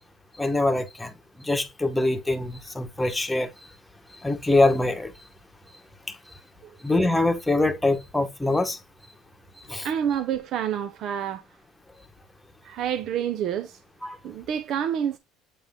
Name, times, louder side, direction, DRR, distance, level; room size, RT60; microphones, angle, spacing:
voice 1, 0.4-1.1 1.4-3.5 4.2-5.1 6.8-8.8 9.7-9.9 14.0-14.2, left 2 dB, 10° left, 1.2 m, -23 dB
voice 2, 9.8-11.4 12.6-13.8 14.2-15.2, right 9 dB, 55° right, 0.8 m, -28 dB
8.4 x 3.8 x 3.5 m
cardioid pair, 120°, 0 cm